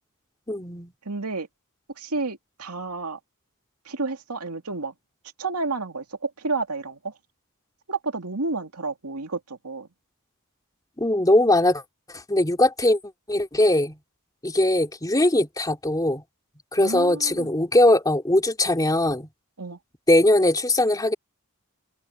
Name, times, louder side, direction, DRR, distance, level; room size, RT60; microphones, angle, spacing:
voice 1, 0.5-0.9 11.0-11.8 12.3-13.0 13.3-14.0 14.4-16.2 16.7-19.3 20.1-21.1, left 1 dB, 15° left, 3.1 m, -20 dB
voice 2, 1.0-1.5 2.0-3.2 3.8-4.9 5.4-7.1 7.9-9.9 16.8-17.5 19.6-19.8, right 3 dB, 85° right, 2.5 m, -30 dB
head